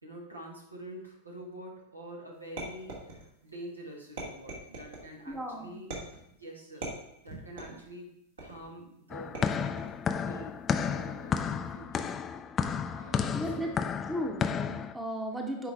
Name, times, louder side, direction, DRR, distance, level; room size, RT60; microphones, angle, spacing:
voice 1, 0.0-5.9 6.4-6.9 7.2-8.1 8.4-9.4 10.1-12.1 12.9-13.7, right 1 dB, 80° right, 0 dB, 1.5 m, -46 dB
sound 1, 2.6-3.5 4.2-5.1 5.9-6.3 6.8-7.9 8.4-8.8 9.3-10.0 10.8-11.2, right 2 dB, 60° right, 2.2 m, -41 dB
voice 2, 5.3-5.8 13.3-13.7 14.1-15.7, equal, 10° right, 3 dB, 1.0 m, -35 dB
sound 2, 9.1-14.9, left 7 dB, 25° left, 0.4 m, -32 dB
8.8 x 4.9 x 3.5 m, 0.77 s
figure-of-eight pair, 90°, 0 cm